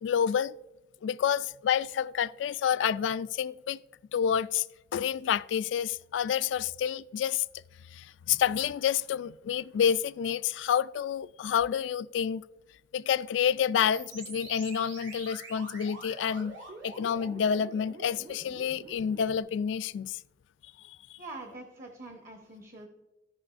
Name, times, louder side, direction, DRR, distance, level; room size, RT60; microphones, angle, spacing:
voice 1, 0.0-0.5 1.0-3.8 4.1-4.6 4.9-7.4 7.9-12.4 12.9-16.6 16.8-20.2 20.9-21.2, left 8 dB, 80° left, 0.3 m, -29 dB
sound 1, 13.9-19.4, right 2 dB, 85° right, 2.7 m, -45 dB
voice 2, 21.2-22.9, right 2 dB, 50° right, 1.1 m, -44 dB
15.5 x 5.5 x 2.5 m
head